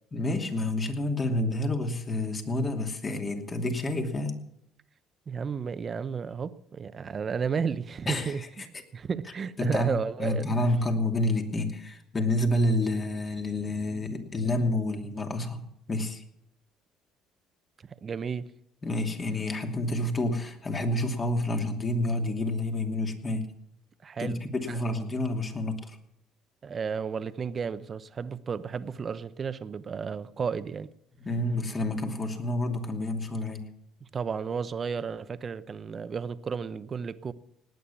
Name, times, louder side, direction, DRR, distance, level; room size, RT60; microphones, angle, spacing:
voice 1, 0.1-4.4 8.1-8.5 9.6-16.2 18.8-23.5 24.2-25.9 31.2-33.6, left 1 dB, 30° left, 2.7 m, -29 dB
voice 2, 5.3-10.5 18.0-18.5 24.0-24.4 24.7-24.8 26.6-30.9 34.1-37.3, right 6 dB, 35° right, 0.9 m, -33 dB
18.5 x 9.4 x 7.1 m
cardioid pair, 100°, 0 cm